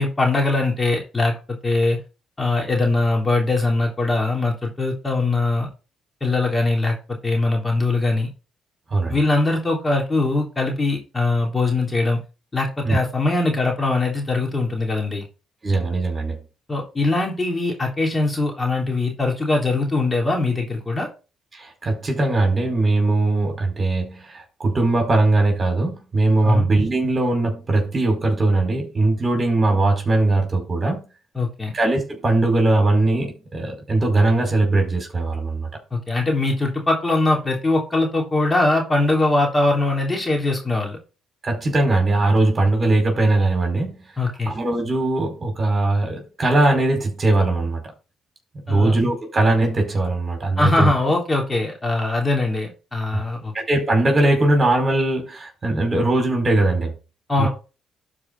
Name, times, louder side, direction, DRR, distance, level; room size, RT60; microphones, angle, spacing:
voice 1, 0.0-1.3 1.6-2.0 2.4-5.7 6.2-8.3 9.1-12.2 12.5-15.2 16.7-21.1 26.4-26.7 31.3-31.7 35.9-41.0 44.2-44.5 48.7-48.9 50.6-53.5 57.3-57.5, left 2 dB, 20° left, 3.3 m, -21 dB
voice 2, 15.6-16.4 21.5-31.0 31.7-35.7 41.4-44.0 44.5-47.8 48.7-50.9 53.1-53.2 53.5-56.9 57.4-57.5, right 2 dB, 30° right, 4.8 m, -20 dB
12.0 x 4.9 x 4.1 m
hypercardioid pair, 55°, 0 cm